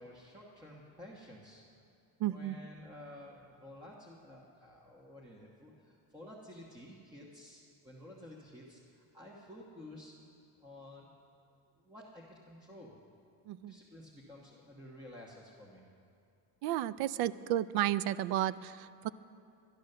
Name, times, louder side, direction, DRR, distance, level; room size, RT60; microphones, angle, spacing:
voice 1, 0.0-1.8 2.3-10.1 10.6-11.1 11.8-12.9 13.6-15.8, left 1 dB, 10° right, -5 dB, 1.2 m, -52 dB
voice 2, 2.2-2.6 13.5-13.7 16.6-19.1, right 13 dB, 70° right, 17 dB, 0.5 m, -32 dB
12.0 x 11.5 x 6.7 m, 2.5 s
cardioid pair, 155°, 40 cm